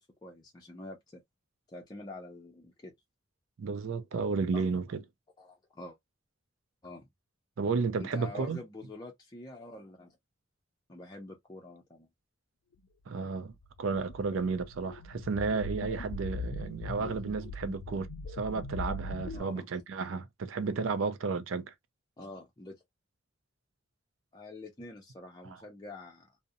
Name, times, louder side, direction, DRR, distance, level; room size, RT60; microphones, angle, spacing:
voice 1, 0.2-1.2 1.7-2.9 4.5-4.7 5.4-6.0 6.8-7.1 8.0-10.2 10.9-12.1 17.0-17.2 19.3-19.7 20.6-20.7 22.2-22.8 24.3-26.3, left 2 dB, 20° left, 0.5 m, -46 dB
voice 2, 3.6-5.0 7.6-8.6 13.1-21.7, right 4 dB, 90° right, 0.4 m, -32 dB
sound 1, 13.6-19.4, left 1 dB, 90° left, 0.4 m, -40 dB
2.5 x 2.0 x 2.6 m
head